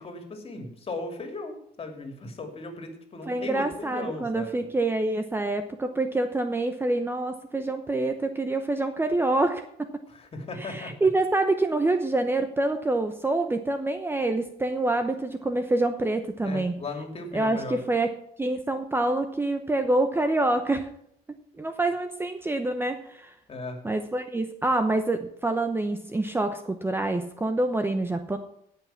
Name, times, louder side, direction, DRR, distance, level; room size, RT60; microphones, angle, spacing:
voice 1, 0.0-4.6 10.1-10.9 16.4-17.8 23.5-23.9, left 3 dB, 35° left, 4 dB, 2.8 m, -37 dB
voice 2, 3.3-9.9 10.6-16.7 17.3-18.1 18.4-20.9 21.6-23.3 23.8-28.4, right 2 dB, 15° right, 7 dB, 0.9 m, -26 dB
16.5 x 5.9 x 5.8 m, 0.71 s
cardioid pair, 110°, 17 cm